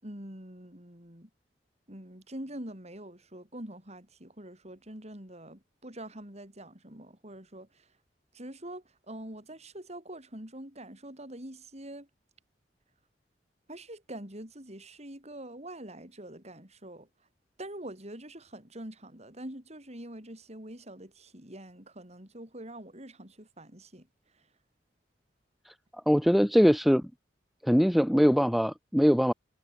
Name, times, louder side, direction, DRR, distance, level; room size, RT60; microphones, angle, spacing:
voice 1, 0.0-1.3 1.9-7.9 8.3-12.1 13.7-17.1 17.6-24.1 24.3-24.4, right 1 dB, 35° right, 7.3 m, -45 dB
voice 2, 26.1-27.1 27.6-29.3, equal, ahead, 1.3 m, -22 dB
head